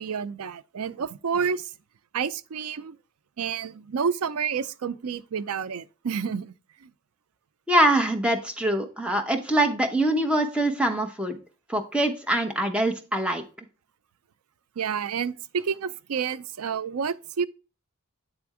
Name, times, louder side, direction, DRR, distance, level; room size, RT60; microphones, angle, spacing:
voice 1, 0.0-1.7 2.1-3.0 3.4-6.5 6.8-6.9 14.8-17.5, right 6 dB, 85° right, 0.5 m, -29 dB
voice 2, 7.7-11.4 11.7-13.4, right 1 dB, 5° right, 0.9 m, -24 dB
9.0 x 3.4 x 4.8 m
head